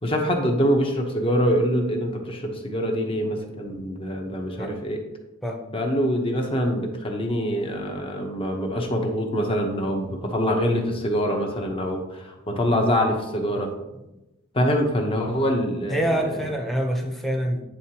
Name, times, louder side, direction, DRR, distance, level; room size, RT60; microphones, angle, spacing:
voice 1, 0.0-5.0 5.7-13.7 14.5-16.2, equal, 30° left, 2 dB, 0.9 m, -24 dB
voice 2, 15.9-17.6, right 1 dB, ahead, 1 dB, 0.8 m, -26 dB
9.2 x 3.7 x 2.9 m, 0.97 s
head